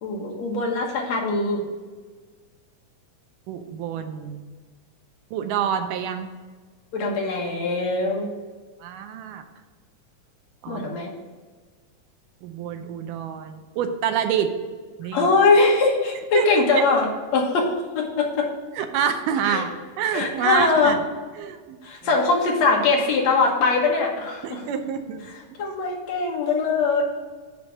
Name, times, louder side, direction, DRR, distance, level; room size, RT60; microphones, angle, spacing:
voice 1, 0.0-1.6 6.9-8.3 10.7-11.1 15.1-17.1 17.3-18.5 19.5-19.6 20.1-20.9 21.8-24.6 25.6-27.0, left 3 dB, 60° left, 0 dB, 2.2 m, -21 dB
voice 2, 3.5-4.4 5.3-6.3 8.8-9.4 10.6-10.8 12.4-14.6 15.0-15.3 16.3-16.5 16.7-16.8 18.8-21.0 21.4-21.8 24.4-25.3 25.6-25.7, right 8 dB, 85° right, 7 dB, 2.2 m, -27 dB
9.9 x 3.4 x 6.3 m, 1.4 s
omnidirectional pair, 3.8 m